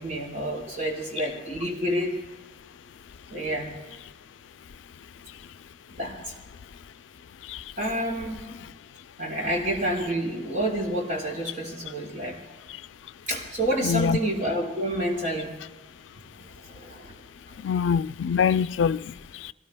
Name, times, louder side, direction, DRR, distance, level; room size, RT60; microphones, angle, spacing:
voice 1, 0.0-2.1 3.3-3.7 6.0-6.2 7.8-8.5 9.2-12.4 13.3-15.5 16.3-17.1, right 1 dB, 40° right, 4.5 m, -29 dB
voice 2, 13.8-14.2 17.6-19.5, left 6 dB, 90° left, 0.4 m, -25 dB
27.5 x 19.0 x 2.2 m
head